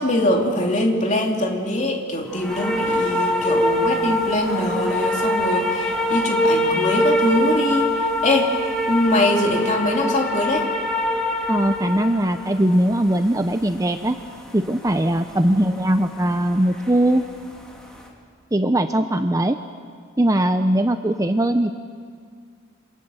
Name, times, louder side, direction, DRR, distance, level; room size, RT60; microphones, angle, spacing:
voice 1, 0.0-8.6 8.9-10.7, left 1 dB, 35° left, 1 dB, 3.1 m, -22 dB
sound 1, 2.3-17.2 17.6-18.0, left 1 dB, 5° left, 3.1 m, -24 dB
voice 2, 11.5-14.2 14.5-17.2 18.5-19.6 20.2-21.7, right 1 dB, 15° right, 8 dB, 0.7 m, -20 dB
28.5 x 26.5 x 8.0 m, 2.1 s
head